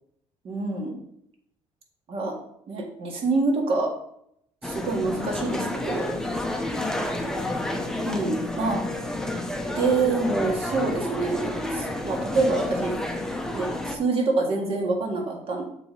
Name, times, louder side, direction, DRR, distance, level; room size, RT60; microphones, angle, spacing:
voice 1, 0.4-0.9 2.1-2.3 2.7-3.9 4.6-6.2 8.1-8.8 9.8-13.0 13.5-15.6, right 3 dB, 50° right, 0 dB, 2.0 m, -26 dB
sound 1, 4.6-14.0, left 1 dB, 5° left, 0.8 m, -30 dB
6.7 x 5.1 x 3.9 m, 0.73 s
cardioid pair, 115°, 12 cm